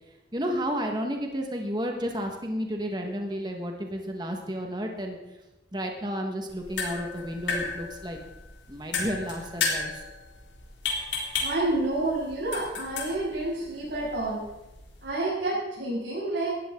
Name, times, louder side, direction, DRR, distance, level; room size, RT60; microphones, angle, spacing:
voice 1, 0.3-5.2 5.7-8.2 8.7-10.0, equal, 25° right, 2 dB, 1.6 m, -32 dB
sound 1, 6.5-15.1, left 4 dB, 85° left, 3.6 m, -34 dB
voice 2, 11.4-14.4 15.0-16.5, right 2 dB, 75° right, -11 dB, 6.8 m, -29 dB
18.0 x 13.5 x 3.9 m, 0.99 s
head